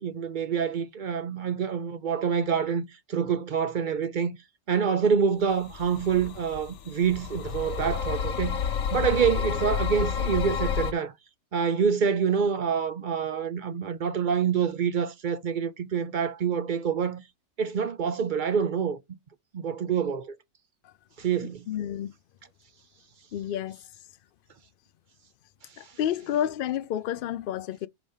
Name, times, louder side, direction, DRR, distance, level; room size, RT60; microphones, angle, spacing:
voice 1, 0.0-2.8 3.1-4.3 4.7-8.6 8.9-11.1 11.5-17.2 17.6-19.0 19.5-20.4 21.2-21.7, right 7 dB, 55° right, 0.6 m, -26 dB
sound 1, 5.7-10.9, left 7 dB, 85° left, 1.2 m, -30 dB
voice 2, 21.7-22.1 23.3-23.8 25.8-27.9, left 10 dB, 60° left, 0.6 m, -30 dB
5.1 x 3.9 x 5.4 m
omnidirectional pair, 1.3 m